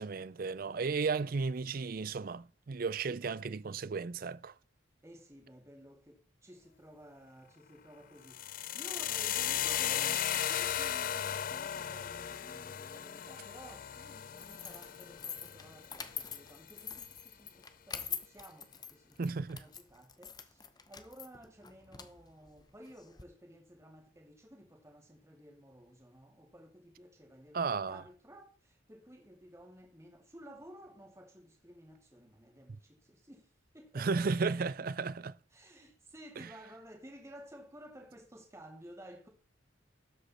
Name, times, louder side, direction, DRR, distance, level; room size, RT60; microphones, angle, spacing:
voice 1, 0.0-4.5 19.2-19.6 27.5-28.0 33.9-35.4 36.4-36.5, right 4 dB, 45° right, 0.4 m, -34 dB
voice 2, 5.0-19.2 19.5-34.3 35.5-39.3, equal, 15° right, 2.3 m, -54 dB
sound 1, 8.2-16.3, left 11 dB, 45° left, 0.4 m, -36 dB
sound 2, 14.4-23.2, left 7 dB, 20° left, 0.9 m, -45 dB
12.5 x 8.1 x 4.2 m
head